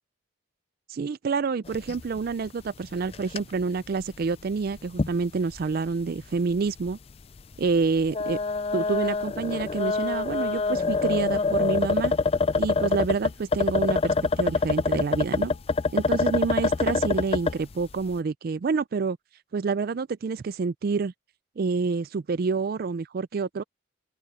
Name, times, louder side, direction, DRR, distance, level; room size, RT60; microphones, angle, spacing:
voice 1, 0.9-7.0 7.6-8.4 8.7-12.1 12.6-15.5 15.9-19.2 19.5-21.1 21.6-23.6, right 4 dB, 45° right, 0.4 m, -28 dB
sound 1, 1.7-2.2 2.5-2.6 3.0-3.4 4.0-4.1 5.0-5.1 5.5-5.6 6.8-6.9 8.0-17.6, left 4 dB, 30° left, 0.4 m, -25 dB
open air
head